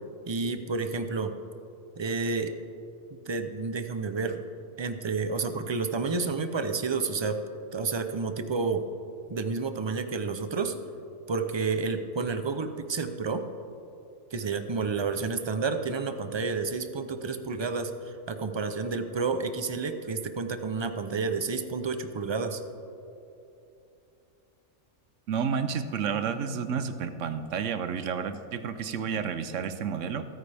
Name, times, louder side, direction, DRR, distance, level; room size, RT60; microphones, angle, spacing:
voice 1, 0.3-1.4 2.0-2.5 3.1-4.4 4.8-7.4 7.7-8.8 9.3-10.8 11.3-13.5 14.3-22.6, right 4 dB, 35° right, 8 dB, 0.4 m, -30 dB
voice 2, 25.3-30.3, right 6 dB, 70° right, 10 dB, 1.0 m, -30 dB
22.0 x 9.4 x 3.4 m, 2.8 s
omnidirectional pair, 1.4 m